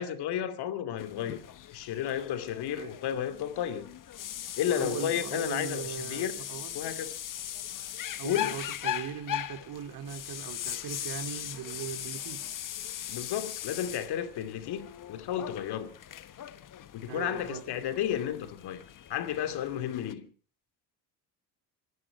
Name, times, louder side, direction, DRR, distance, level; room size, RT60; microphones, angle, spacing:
voice 1, 0.0-1.4 1.7-3.9 4.6-6.3 6.7-7.1 8.2-8.6 13.1-15.9 16.9-20.3, left 10 dB, 65° left, 2.5 m, -32 dB
sound 1, 1.0-20.1, left 11 dB, 50° left, 1.3 m, -39 dB
voice 2, 4.6-6.7 8.2-12.4 17.1-17.6, right 8 dB, 60° right, 2.7 m, -39 dB
26.5 x 11.0 x 4.8 m
supercardioid pair, 85°, 41 cm